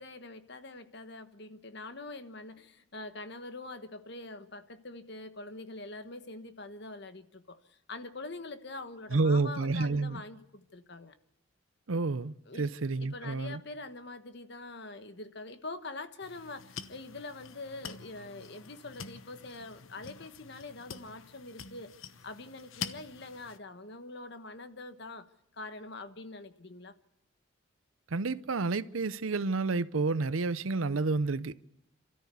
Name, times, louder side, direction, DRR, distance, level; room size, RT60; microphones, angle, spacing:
voice 1, 0.0-11.1 12.5-12.7 13.0-21.9 22.2-25.3 25.6-26.9, left 2 dB, 55° left, 1.3 m, -44 dB
voice 2, 9.1-10.2 11.9-13.6 28.1-31.6, right 3 dB, 85° right, 0.7 m, -30 dB
sound 1, 16.2-23.6, left 6 dB, 90° left, 1.0 m, -46 dB
28.0 x 13.5 x 8.3 m
head